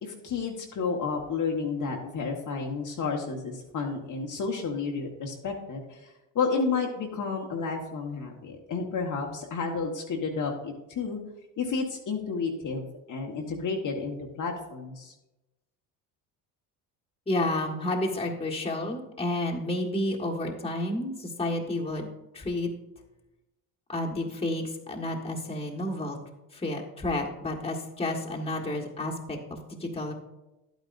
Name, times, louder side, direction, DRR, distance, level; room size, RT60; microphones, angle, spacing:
voice 1, 0.0-11.2 11.6-15.1, left 4 dB, 45° left, 1 dB, 1.3 m, -31 dB
voice 2, 17.3-22.1 22.3-22.7 23.9-26.2 26.5-30.1, left 1 dB, 15° left, -1 dB, 1.6 m, -30 dB
11.0 x 9.1 x 2.6 m, 0.98 s
supercardioid pair, 80°, 42 cm